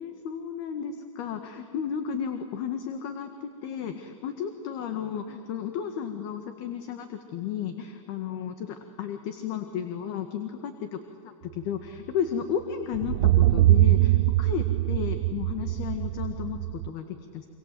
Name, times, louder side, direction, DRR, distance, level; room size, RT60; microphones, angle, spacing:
voice 1, 0.0-17.5, left 8 dB, 50° left, 7 dB, 1.8 m, -33 dB
sound 1, 12.9-16.9, right 16 dB, 60° right, 0.6 m, -22 dB
26.0 x 26.0 x 7.8 m, 2.5 s
supercardioid pair, 150°, 17 cm